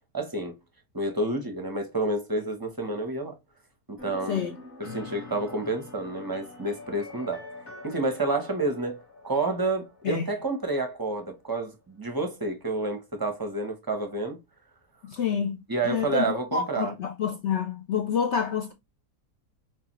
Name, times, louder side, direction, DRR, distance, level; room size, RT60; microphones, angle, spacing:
voice 1, 0.1-0.6 0.9-3.3 3.9-4.4 4.8-7.4 7.8-14.4 15.7-16.9, right 2 dB, 20° right, 0.6 m, -29 dB
sound 1, 4.0-11.5, left 2 dB, 45° left, 2.1 m, -45 dB
voice 2, 15.1-18.7, left 7 dB, 65° left, 0.7 m, -28 dB
6.7 x 2.4 x 3.0 m
omnidirectional pair, 1.7 m